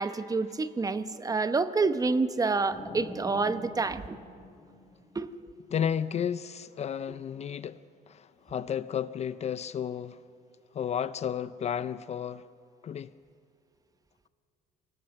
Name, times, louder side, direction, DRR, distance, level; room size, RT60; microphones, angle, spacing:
voice 1, 0.0-4.2 5.1-5.3, right 3 dB, 20° right, 0.9 m, -28 dB
sound 1, 2.7-5.5, equal, 10° left, 3.3 m, -45 dB
voice 2, 5.7-7.8 8.1-10.2 10.7-12.4 12.8-13.1, left 8 dB, 40° left, 0.5 m, -32 dB
22.0 x 18.5 x 6.6 m
cardioid pair, 110°, 17 cm